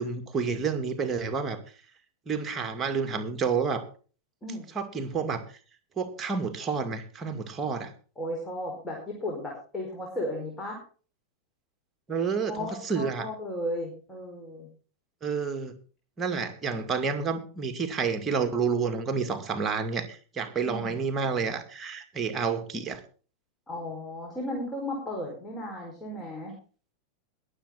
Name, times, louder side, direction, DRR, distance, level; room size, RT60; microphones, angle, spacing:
voice 1, 0.0-1.6 2.3-3.9 4.8-5.4 6.0-7.9 12.1-13.3 15.2-15.7 16.2-23.0, right 5 dB, 20° right, 8 dB, 2.2 m, -29 dB
voice 2, 8.2-10.8 12.5-14.7 20.6-21.0 23.7-26.5, left 1 dB, 10° left, -2 dB, 5.1 m, -35 dB
21.5 x 7.9 x 4.0 m, 0.39 s
figure-of-eight pair, 90°, 0 cm